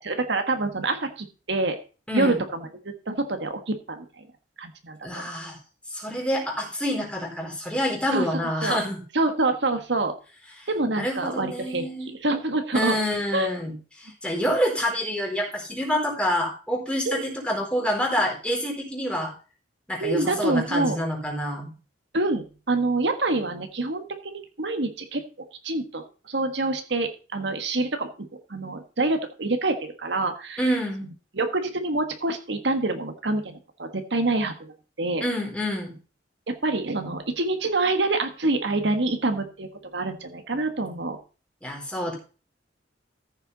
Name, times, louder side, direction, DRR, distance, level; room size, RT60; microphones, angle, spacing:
voice 1, 0.0-1.8 2.1-2.6 3.1-4.2 4.6-5.3 8.1-8.8 9.1-10.1 10.7-11.9 12.2-13.0 13.3-13.5 17.0-17.3 20.0-21.0 22.1-25.2 25.6-30.6 31.3-35.2 36.5-41.2, right 2 dB, 65° right, 6 dB, 1.5 m, -26 dB
voice 2, 2.1-2.4 5.0-5.6 5.9-9.0 10.9-12.1 12.7-19.3 19.9-21.7 30.6-31.1 35.2-35.9 41.6-42.2, equal, 5° left, -1 dB, 4.1 m, -27 dB
14.5 x 6.8 x 4.1 m, 0.34 s
head